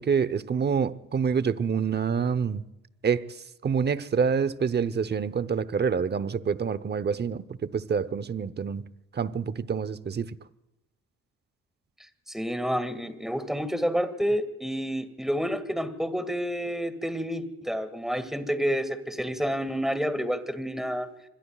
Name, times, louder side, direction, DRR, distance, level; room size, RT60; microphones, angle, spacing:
voice 1, 0.0-2.6 3.0-3.2 3.6-8.8 9.1-10.3, right 6 dB, 35° right, 0.9 m, -27 dB
voice 2, 12.3-21.1, equal, ahead, 2.1 m, -29 dB
26.0 x 22.0 x 2.4 m
cardioid pair, 90°, 30 cm